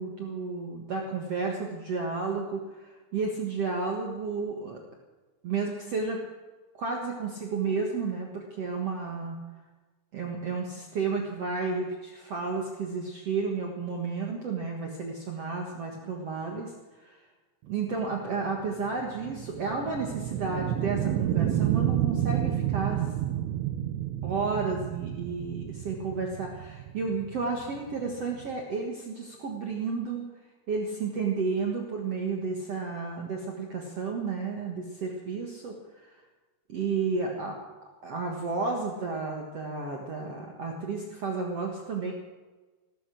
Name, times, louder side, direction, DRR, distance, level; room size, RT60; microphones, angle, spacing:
voice 1, 0.0-4.8 5.4-6.2 6.7-9.4 10.1-16.7 17.0-17.2 17.7-23.1 24.2-30.2 30.7-35.7 36.0-36.1 36.7-37.6 38.0-42.1, right 4 dB, 55° right, 0 dB, 1.9 m, -32 dB
sound 1, 17.9-28.6, right 11 dB, 85° right, 3.0 m, -30 dB
16.0 x 13.5 x 6.4 m, 1.3 s
omnidirectional pair, 4.8 m